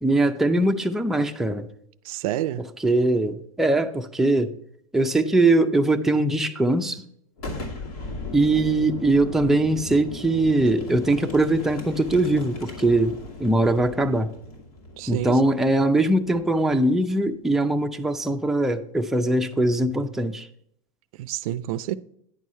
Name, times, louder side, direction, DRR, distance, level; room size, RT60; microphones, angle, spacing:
voice 1, 0.0-1.7 2.8-4.5 4.9-7.0 8.3-14.3 15.1-20.5, right 2 dB, ahead, 0.5 m, -21 dB
voice 2, 2.0-2.6 15.0-15.4 21.2-22.0, right 13 dB, 75° right, 0.4 m, -28 dB
Boom, 7.4-16.9, left 2 dB, 85° left, 2.5 m, -37 dB
9.7 x 4.7 x 5.5 m
supercardioid pair, 125°, 19 cm